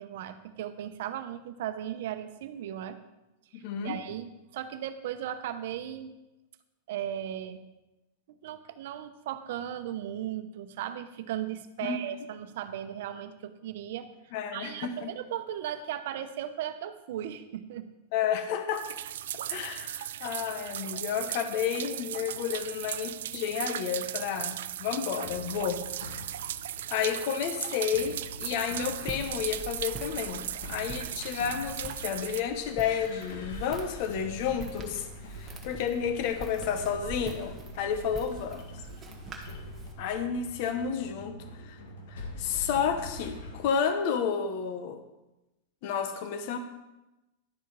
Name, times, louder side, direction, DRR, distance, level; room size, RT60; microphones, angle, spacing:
voice 1, 0.0-3.0 3.5-6.1 6.9-7.6 8.4-14.1 14.5-17.9, right 11 dB, 60° right, 10 dB, 0.9 m, -37 dB
voice 2, 3.5-4.0 11.8-12.0 14.3-15.1 18.1-18.9 19.5-25.8 26.9-38.7 40.0-41.8 42.1-45.0 45.8-46.6, left 7 dB, 45° left, 8 dB, 1.0 m, -31 dB
sound 1, 18.7-32.4, right 12 dB, 80° right, 0.4 m, -37 dB
sound 2, 24.7-43.6, left 2 dB, 75° left, 1.9 m, -45 dB
Walk footsteps, 28.8-39.9, right 3 dB, 15° right, 1.3 m, -44 dB
11.5 x 7.5 x 4.8 m, 0.99 s
supercardioid pair, 165°, 0 cm